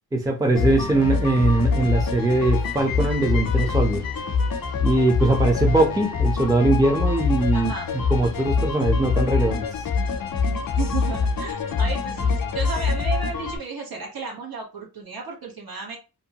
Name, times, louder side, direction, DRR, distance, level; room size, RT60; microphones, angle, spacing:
voice 1, 0.1-4.0 4.8-7.7 8.1-9.6, right 2 dB, 10° right, 2 dB, 0.5 m, -21 dB
sound 1, 0.5-13.6, left 4 dB, 60° left, 0.5 m, -24 dB
voice 2, 7.5-7.9 10.4-16.0, right 5 dB, 65° right, -1 dB, 1.2 m, -33 dB
2.7 x 2.1 x 2.7 m, 0.30 s
wide cardioid pair, 120°, 39 cm